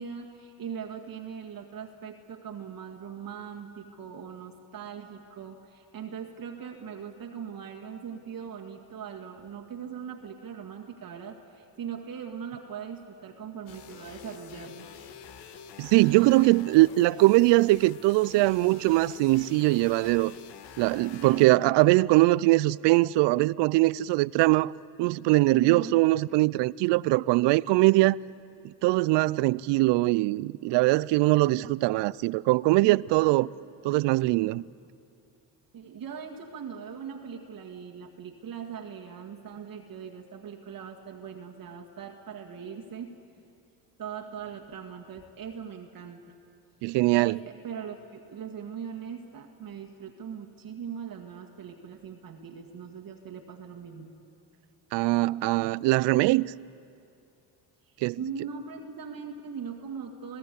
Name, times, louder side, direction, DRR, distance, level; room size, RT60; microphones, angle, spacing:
voice 1, 0.0-14.9 21.2-21.5 25.6-25.9 33.2-33.5 35.7-43.2 44.0-46.3 47.1-54.1 57.9-60.4, right 7 dB, 50° right, 1.9 m, -40 dB
sound 1, 13.7-21.5, left 7 dB, 70° left, 1.6 m, -47 dB
voice 2, 15.8-20.3 20.8-24.7 25.0-28.2 28.6-33.5 33.8-34.6 46.8-47.4 54.9-56.5 58.0-58.2, right 20 dB, 75° right, 0.5 m, -22 dB
26.5 x 17.0 x 8.4 m
supercardioid pair, 85°, 43 cm